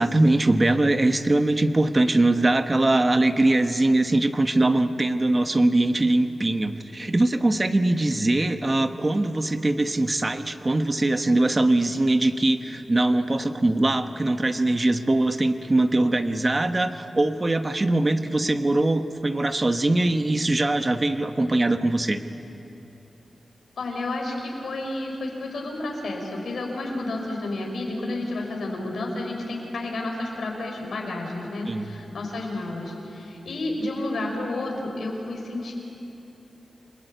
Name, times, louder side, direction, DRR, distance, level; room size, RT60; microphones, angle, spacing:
voice 1, 0.0-22.2 31.7-31.9, right 2 dB, 25° right, 8 dB, 1.2 m, -22 dB
voice 2, 23.8-35.7, left 2 dB, 75° left, 0 dB, 5.9 m, -31 dB
29.0 x 22.5 x 9.1 m, 3.0 s
wide cardioid pair, 150°, 0 cm